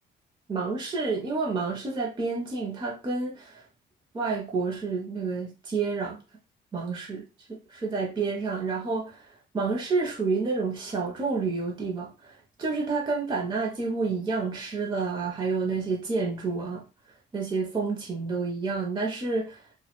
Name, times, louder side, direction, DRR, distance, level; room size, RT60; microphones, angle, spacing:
voice 1, 0.5-3.6 4.1-6.2 6.7-7.2 7.7-16.8 17.3-19.6, right 4 dB, 25° right, 0.5 m, -29 dB
2.2 x 2.1 x 2.8 m
cardioid pair, 90°, 20 cm